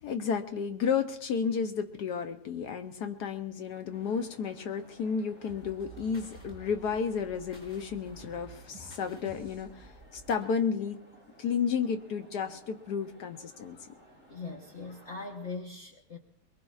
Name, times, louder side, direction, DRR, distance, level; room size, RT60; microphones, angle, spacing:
voice 1, 0.0-11.0 11.4-13.8, left 6 dB, 65° left, 8 dB, 1.0 m, -32 dB
sound 1, 3.9-15.6, equal, 30° left, 4.2 m, -57 dB
sound 2, 5.5-10.5, right 3 dB, 15° left, 5.3 m, -51 dB
voice 2, 14.3-16.2, left 3 dB, 45° left, 2 dB, 0.9 m, -40 dB
23.0 x 22.0 x 2.4 m, 0.76 s
omnidirectional pair, 2.4 m